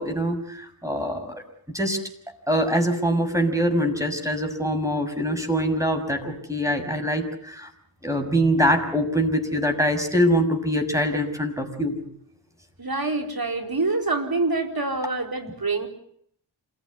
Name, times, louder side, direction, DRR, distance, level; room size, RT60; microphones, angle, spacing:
voice 1, 0.0-1.4 1.7-2.0 2.5-7.7 8.0-12.0, equal, 5° right, 5 dB, 6.3 m, -24 dB
voice 2, 12.8-15.9, right 3 dB, 45° right, 4 dB, 4.6 m, -26 dB
27.5 x 15.5 x 9.7 m, 0.66 s
cardioid pair, 40°, 48 cm